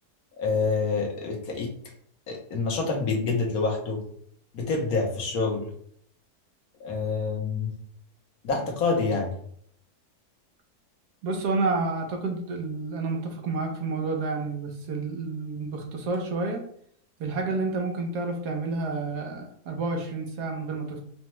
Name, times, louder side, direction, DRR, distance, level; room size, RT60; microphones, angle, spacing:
voice 1, 0.4-1.7 2.3-4.0 4.5-5.7 6.8-7.7 8.4-9.3, left 4 dB, 65° left, 0 dB, 1.3 m, -27 dB
voice 2, 11.2-16.6 17.2-21.0, right 3 dB, 85° right, 2 dB, 1.4 m, -29 dB
5.0 x 2.2 x 3.1 m, 0.63 s
omnidirectional pair, 1.7 m